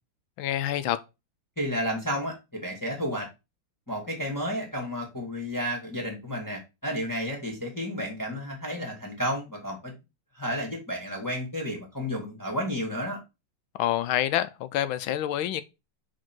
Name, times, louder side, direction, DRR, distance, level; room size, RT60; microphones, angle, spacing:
voice 1, 0.4-1.0 13.8-15.6, left 12 dB, 80° left, 1.4 m, -27 dB
voice 2, 1.6-3.3 3.9-9.9 10.3-13.2, equal, 10° left, 1.8 m, -32 dB
5.0 x 4.6 x 6.0 m
omnidirectional pair, 2.3 m